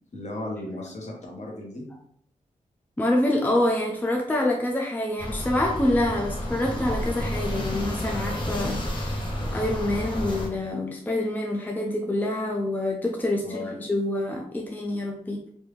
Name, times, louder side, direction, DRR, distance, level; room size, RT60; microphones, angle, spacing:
voice 1, 0.1-1.9 13.4-13.8, left 2 dB, 55° left, -1 dB, 1.1 m, -35 dB
voice 2, 3.0-9.2 9.5-15.4, left 1 dB, 15° left, 1 dB, 0.4 m, -26 dB
sound 1, 5.2-10.5, left 1 dB, 35° left, 1.0 m, -30 dB
3.3 x 2.6 x 3.1 m, 0.65 s
wide cardioid pair, 105°, 14 cm